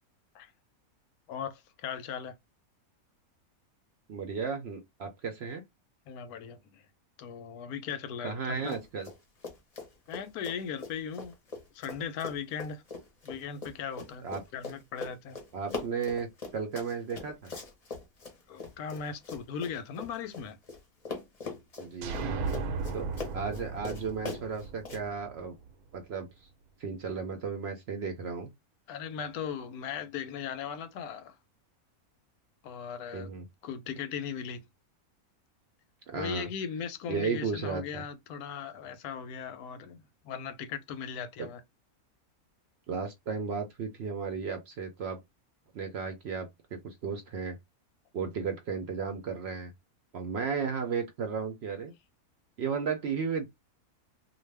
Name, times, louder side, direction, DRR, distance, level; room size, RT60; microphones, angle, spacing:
voice 1, 1.3-2.3 6.1-6.8 7.2-8.7 10.1-11.3 11.7-12.8 13.2-14.3 14.5-15.4 18.5-20.6 28.9-31.3 32.6-33.3 33.6-34.6 36.1-41.6, left 7 dB, 90° left, 1.1 m, -38 dB
voice 2, 4.1-5.6 8.2-9.1 14.2-14.4 15.5-17.5 21.8-22.2 22.9-25.5 25.9-26.5 26.8-28.5 33.1-33.5 36.1-36.5 37.1-38.0 41.4-41.5 42.9-45.2 45.7-47.6 48.1-49.7 50.1-51.9 52.6-53.5, right 5 dB, 65° right, 0.7 m, -34 dB
Run, 8.6-9.2 9.4-20.8 21.1-25.0, left 3 dB, 35° left, 0.7 m, -41 dB
sound 1, 22.0-25.7, right 4 dB, 90° right, 1.1 m, -36 dB
2.5 x 2.3 x 3.2 m
omnidirectional pair, 1.5 m